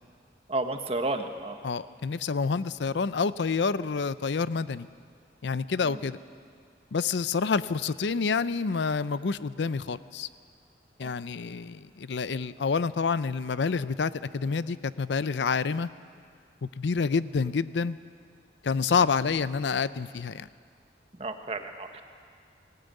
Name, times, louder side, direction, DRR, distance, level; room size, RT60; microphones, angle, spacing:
voice 1, 0.5-1.6 5.9-6.0 11.0-11.1 21.2-22.0, right 2 dB, 35° right, 6 dB, 1.3 m, -32 dB
voice 2, 1.6-4.9 5.4-6.2 6.9-10.3 11.0-15.9 16.6-18.0 18.6-20.5, left 5 dB, 80° left, 16 dB, 0.5 m, -28 dB
18.5 x 18.5 x 9.1 m, 2.2 s
head